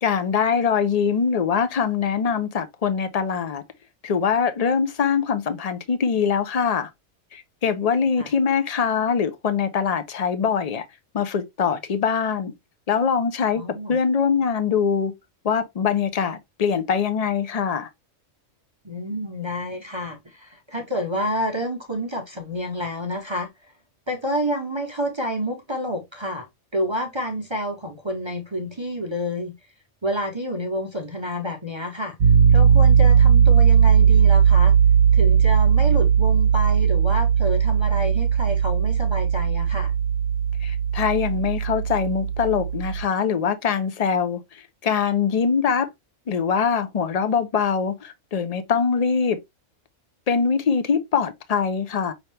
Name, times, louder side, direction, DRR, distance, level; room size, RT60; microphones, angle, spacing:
voice 1, 0.0-3.6 4.0-6.9 7.3-10.8 11.1-12.5 12.9-13.6 13.9-15.1 15.4-17.9 40.6-45.9 46.3-49.4 50.3-52.1, left 6 dB, 50° left, 0.4 m, -23 dB
voice 2, 13.5-14.0 18.8-23.5 24.1-26.5 26.7-29.6 30.0-32.2 32.5-34.7 35.1-39.9, equal, 30° right, 0.6 m, -29 dB
Piano, 32.2-43.0, right 7 dB, 70° right, 1.2 m, -18 dB
5.6 x 2.9 x 3.2 m
omnidirectional pair, 1.4 m